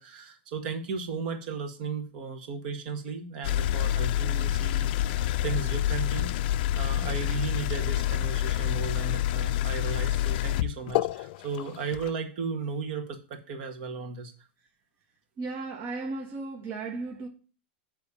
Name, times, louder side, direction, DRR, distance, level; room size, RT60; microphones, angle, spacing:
voice 1, 0.0-4.9 5.4-6.3 6.8-14.3, right 5 dB, 55° right, 1.8 m, -35 dB
sound 1, 3.4-12.1, left 13 dB, 60° left, 0.3 m, -27 dB
voice 2, 15.4-17.3, right 3 dB, 40° right, 1.4 m, -35 dB
9.9 x 3.5 x 6.9 m
hypercardioid pair, 130°, 6 cm